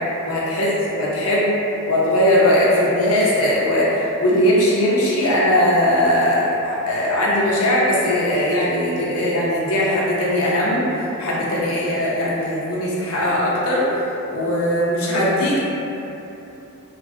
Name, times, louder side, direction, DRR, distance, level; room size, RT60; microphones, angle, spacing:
voice 1, 0.3-0.7 0.9-1.5 1.9-13.8 14.3-15.6, left 1 dB, 75° left, -6 dB, 0.7 m, -19 dB
2.9 x 2.6 x 2.5 m, 3.0 s
head